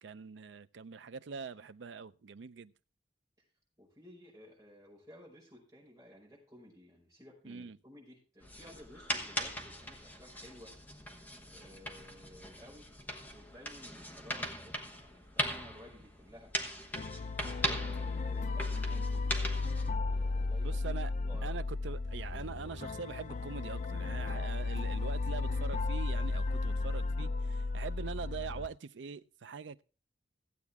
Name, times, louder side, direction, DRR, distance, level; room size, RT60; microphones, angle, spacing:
voice 1, 0.0-2.7 7.5-7.8 20.6-21.1 21.4-29.8, right 5 dB, 75° right, 0.5 m, -43 dB
voice 2, 3.8-10.8 11.5-12.9 13.3-16.5 17.7-19.4 20.1-20.9 21.2-21.6, left 1 dB, 20° right, 5.3 m, -55 dB
sound 1, 8.4-19.9, left 1 dB, 10° left, 1.1 m, -40 dB
sound 2, 17.0-28.7, left 3 dB, 45° left, 0.5 m, -34 dB
sound 3, 22.0-27.0, left 3 dB, 90° left, 1.3 m, -53 dB
15.0 x 8.3 x 3.5 m
head